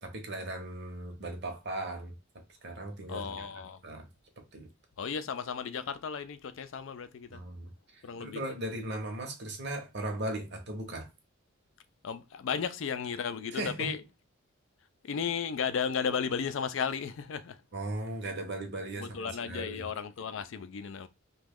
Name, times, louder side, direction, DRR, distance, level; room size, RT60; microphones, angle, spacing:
voice 1, 0.0-2.1 2.6-4.0 4.5-4.7 7.3-11.1 13.5-13.9 17.7-19.9, right 1 dB, 50° right, 0.9 m, -38 dB
voice 2, 3.1-3.8 5.0-7.4 8.0-8.4 12.0-14.0 15.0-17.6 19.0-21.1, left 6 dB, 60° left, 0.4 m, -34 dB
3.0 x 2.3 x 3.5 m
head